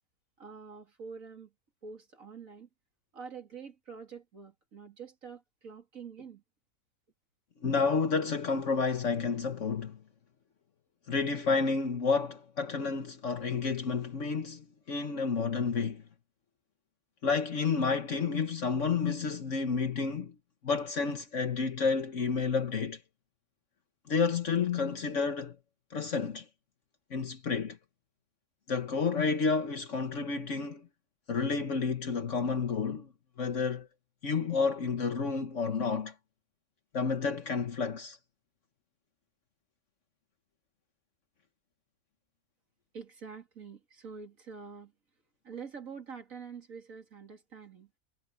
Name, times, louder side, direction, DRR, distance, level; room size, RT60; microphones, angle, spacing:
voice 1, 0.4-1.5 1.8-2.7 3.1-6.4 42.9-44.9 45.4-47.9, right 5 dB, 80° right, 3.0 m, -46 dB
voice 2, 7.6-10.0 11.1-16.0 17.2-20.3 20.6-23.0 24.1-25.6 25.9-26.4 27.1-27.8 28.7-30.9 31.3-33.1 33.4-33.9 34.2-36.1 36.9-38.2, left 5 dB, 65° left, 1.6 m, -30 dB
omnidirectional pair, 1.4 m